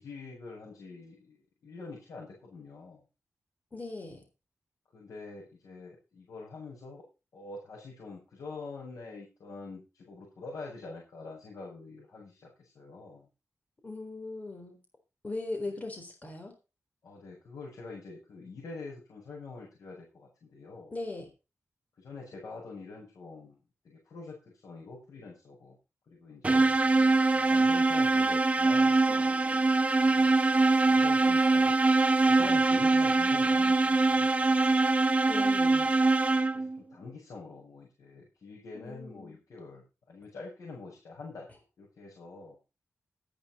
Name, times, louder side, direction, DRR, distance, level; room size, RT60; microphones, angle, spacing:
voice 1, 0.0-3.0 4.9-7.0 7.3-13.3 17.0-20.9 22.0-23.5 23.8-25.8 26.1-26.7 27.3-29.0 30.0-30.4 30.9-31.8 32.2-34.7 36.5-41.5 41.8-42.5, left 3 dB, 90° left, -5 dB, 6.6 m, -45 dB
voice 2, 3.7-4.2 13.8-14.8 15.2-16.5 20.9-21.3 26.7-27.4 35.3-36.0 38.7-39.4, left 2 dB, 30° left, 4 dB, 4.0 m, -39 dB
sound 1, 26.4-36.8, right 3 dB, 25° right, 0.7 m, -23 dB
13.0 x 10.5 x 4.3 m, 0.30 s
wide cardioid pair, 160°, 6 cm